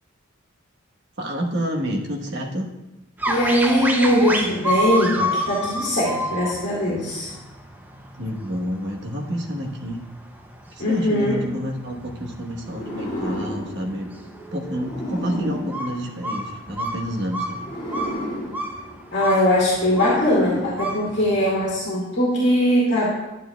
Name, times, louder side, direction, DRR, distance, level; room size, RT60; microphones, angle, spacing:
voice 1, 1.2-2.7 8.2-10.0 10.7-14.1 14.5-17.7, equal, 55° right, 0 dB, 1.1 m, -29 dB
sound 1, 3.2-21.8, right 1 dB, 10° right, 0.5 m, -30 dB
voice 2, 3.3-7.3 10.8-11.4 19.1-23.1, left 1 dB, 55° left, -5 dB, 2.1 m, -20 dB
sound 2, 12.7-16.8 17.5-21.5, left 1 dB, 25° left, 2.1 m, -33 dB
10.5 x 9.2 x 2.3 m, 1.0 s
head